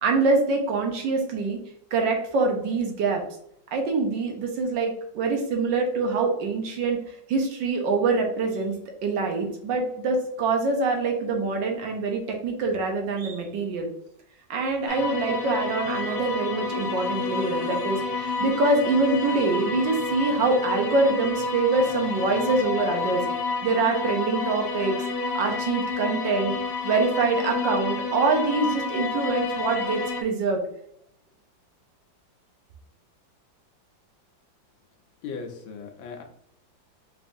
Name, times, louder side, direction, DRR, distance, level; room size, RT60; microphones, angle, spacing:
voice 1, 0.0-1.6 1.9-3.2 3.7-8.8 9.0-13.9 14.5-23.2 23.6-25.0 25.3-26.5 26.8-30.6, right 3 dB, 75° right, 3 dB, 1.5 m, -25 dB
sound 1, 14.9-30.2, left 4 dB, 60° left, 1.2 m, -29 dB
voice 2, 35.2-36.2, left 5 dB, 85° left, 3 dB, 1.6 m, -37 dB
4.8 x 3.4 x 2.6 m, 0.70 s
omnidirectional pair, 2.1 m